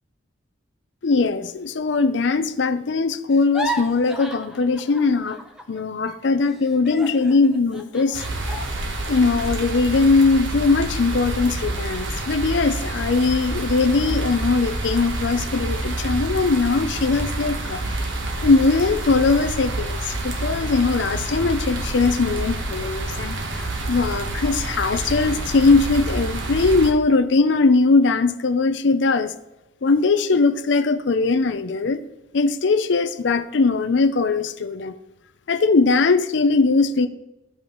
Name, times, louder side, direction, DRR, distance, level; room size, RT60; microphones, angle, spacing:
voice 1, 1.0-5.4 5.7-8.2 8.5-8.7 9.0-17.8 18.4-29.3 29.8-32.0 32.3-35.0 35.5-37.1, left 3 dB, 65° left, 0.5 m, -20 dB
sound 1, 3.3-5.8 6.1-10.5 10.9-11.1 11.5-12.0, equal, 5° right, 0.7 m, -35 dB
sound 2, 8.1-26.9, right 2 dB, 80° right, 1.2 m, -28 dB
13.5 x 5.4 x 3.1 m
head